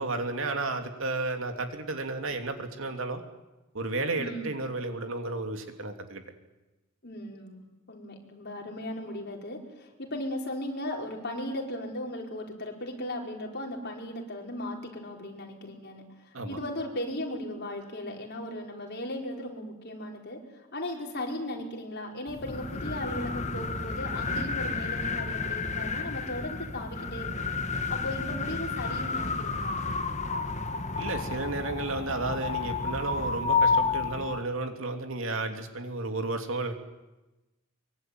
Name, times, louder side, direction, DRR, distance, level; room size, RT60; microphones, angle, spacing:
voice 1, 0.0-3.2 3.7-6.2 16.3-16.6 31.0-36.7, right 2 dB, 60° right, 6 dB, 2.9 m, -32 dB
voice 2, 4.2-4.6 7.0-29.8, left 1 dB, 50° left, 1 dB, 5.1 m, -37 dB
sound 1, 22.3-34.4, left 4 dB, 30° left, 1.7 m, -31 dB
24.0 x 23.5 x 9.5 m, 1.1 s
head